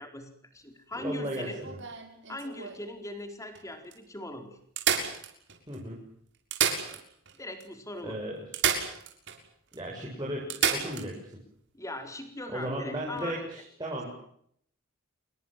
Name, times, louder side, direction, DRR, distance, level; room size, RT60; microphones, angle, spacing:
voice 1, 0.0-1.6 2.3-4.6 6.8-7.0 7.4-8.2 11.7-13.4, left 1 dB, 15° left, 6 dB, 4.5 m, -40 dB
voice 2, 0.9-1.8 5.7-6.0 8.0-8.4 9.7-11.4 12.5-14.1, right 1 dB, 20° right, -3 dB, 7.1 m, -35 dB
sound 1, 1.2-2.9 3.5-3.6 3.9-4.0 4.8-5.8 6.3-7.4 7.6-7.7 8.5-9.4 9.7-9.8 10.5-11.1 13.0-13.2, right 7 dB, 55° right, 6.7 m, -30 dB
28.5 x 23.0 x 7.6 m, 0.69 s
head